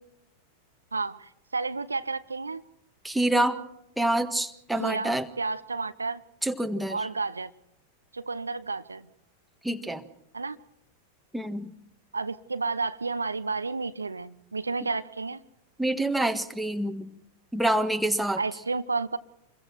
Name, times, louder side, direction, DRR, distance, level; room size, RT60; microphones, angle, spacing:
voice 1, 0.9-2.6 4.8-6.2 6.9-7.5 8.1-9.1 10.3-10.6 12.1-15.4 18.4-19.2, right 4 dB, 80° right, 13 dB, 0.8 m, -31 dB
voice 2, 3.0-3.6 4.0-5.3 6.4-7.1 9.6-10.0 11.3-11.7 15.8-17.1 17.5-18.4, right 1 dB, 5° right, 6 dB, 1.6 m, -27 dB
28.0 x 22.5 x 4.5 m, 0.78 s
figure-of-eight pair, 90°, 0 cm